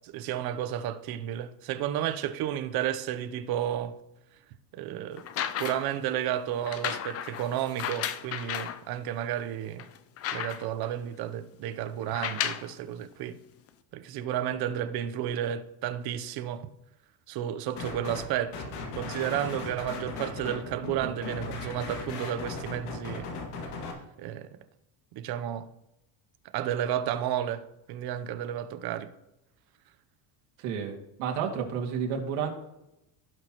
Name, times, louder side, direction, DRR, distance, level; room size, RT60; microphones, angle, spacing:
voice 1, 0.0-4.0 4.7-5.3 5.6-9.9 10.3-13.4 13.9-16.7 17.3-18.6 19.0-23.3 24.2-24.6 25.1-25.7 26.5-29.1, right 10 dB, 45° right, 0.7 m, -32 dB
sound 1, 5.2-6.0 6.7-8.8 9.4-9.5 9.8-10.9 12.0-12.7 13.7-13.8, left 10 dB, 30° left, 0.4 m, -34 dB
sound 2, 17.8-18.3 18.5-23.9, left 3 dB, 75° left, 2.2 m, -37 dB
voice 2, 30.6-32.5, right 7 dB, 75° right, 2.3 m, -31 dB
17.0 x 6.3 x 3.0 m
cardioid pair, 150°, 50 cm